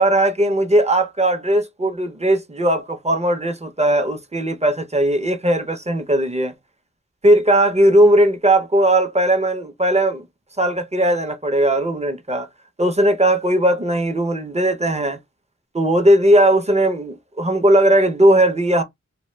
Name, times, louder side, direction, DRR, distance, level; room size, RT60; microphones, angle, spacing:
voice 1, 0.0-6.5 7.2-10.2 10.6-12.5 12.8-15.2 15.7-18.8, right 1 dB, 20° right, 0.5 m, -17 dB
2.1 x 2.1 x 3.1 m
wide cardioid pair, 40°, 29 cm